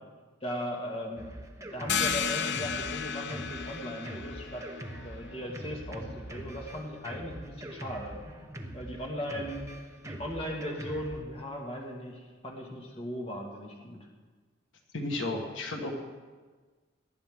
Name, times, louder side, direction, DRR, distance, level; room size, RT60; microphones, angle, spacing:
voice 1, 0.4-4.7 5.0-8.3 8.7-14.1, equal, 30° left, -1 dB, 1.9 m, -38 dB
Drum kit, 1.2-11.2, right 1 dB, 15° right, 1.0 m, -43 dB
sound 1, 1.9-7.3, left 6 dB, 60° left, 0.6 m, -35 dB
voice 2, 14.9-15.9, left 2 dB, 85° left, 2 dB, 1.5 m, -33 dB
18.5 x 10.5 x 3.7 m, 1.4 s
head